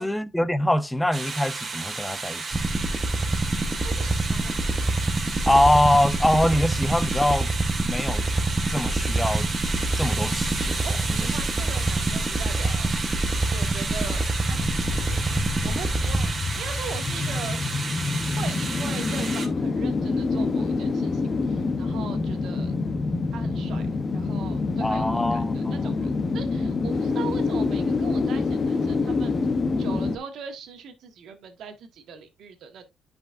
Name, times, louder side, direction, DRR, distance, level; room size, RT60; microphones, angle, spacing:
voice 1, 0.0-2.7 5.5-7.5 7.8-8.3 8.7-9.5 10.0-10.9 24.8-25.7, left 1 dB, 5° left, 0.6 m, -23 dB
sound 1, 1.1-19.5, right 4 dB, 35° right, 1.8 m, -32 dB
sound 2, 2.5-16.9, right 2 dB, 20° right, 1.0 m, -26 dB
voice 2, 3.8-4.6 10.8-12.9 13.5-17.6 18.4-22.7 23.3-23.9 24.1-29.4 29.8-32.8, right 6 dB, 70° right, 1.6 m, -40 dB
sound 3, 14.5-30.2, left 3 dB, 35° left, 0.9 m, -27 dB
10.0 x 5.3 x 2.6 m
cardioid pair, 100°, 0 cm